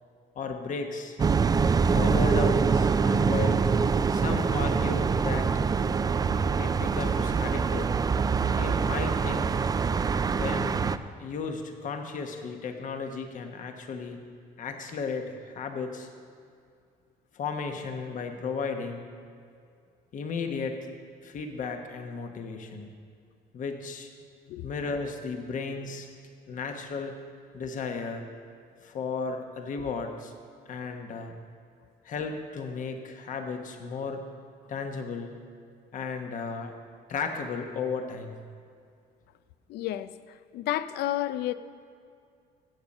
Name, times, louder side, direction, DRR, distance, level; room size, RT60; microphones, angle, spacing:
voice 1, 0.3-1.2 1.9-3.6 4.1-5.5 6.6-8.0 8.6-9.6 10.3-10.8 11.2-14.2 14.6-16.1 17.3-19.1 20.1-20.8 21.2-22.9 23.5-24.1 24.6-26.1 26.5-27.1 27.5-28.2 28.8-30.3 30.7-31.3 32.0-34.2 34.7-35.3 35.9-36.7 37.1-38.4, left 5 dB, 50° left, 5 dB, 1.2 m, -34 dB
sound 1, 1.2-11.0, right 5 dB, 20° right, 0.4 m, -24 dB
voice 2, 39.7-41.5, left 14 dB, 75° left, 14 dB, 0.5 m, -31 dB
16.0 x 7.3 x 5.4 m, 2.3 s
cardioid pair, 110°, 17 cm